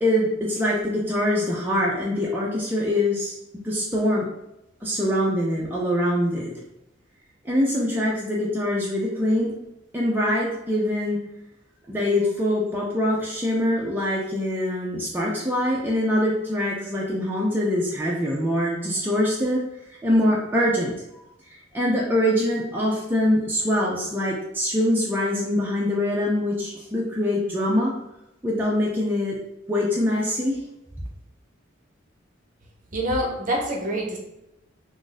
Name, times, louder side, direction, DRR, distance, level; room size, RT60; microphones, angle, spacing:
voice 1, 0.0-3.4 3.6-4.3 4.8-6.5 7.4-9.5 9.9-11.2 11.9-19.6 20.0-20.9 21.5-27.9 28.4-29.4 29.7-30.6, left 1 dB, 10° right, -5 dB, 0.4 m, -24 dB
voice 2, 32.9-34.2, right 1 dB, 45° right, 0 dB, 0.7 m, -26 dB
2.5 x 2.5 x 3.8 m, 0.88 s
head